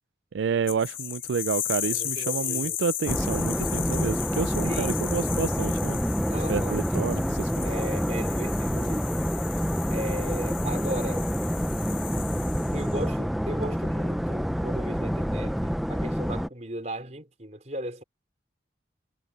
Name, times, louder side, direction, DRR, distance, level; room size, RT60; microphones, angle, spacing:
voice 1, 0.3-6.0 6.5-7.6, right 6 dB, 85° right, 0.4 m, -29 dB
sound 1, 0.7-13.0, left 12 dB, 50° left, 1.7 m, -35 dB
voice 2, 1.8-2.8 4.6-5.0 6.3-6.8 7.6-9.3 9.9-11.3 12.7-18.0, right 1 dB, 40° right, 4.5 m, -36 dB
sound 2, 3.1-16.5, equal, ahead, 0.5 m, -27 dB
head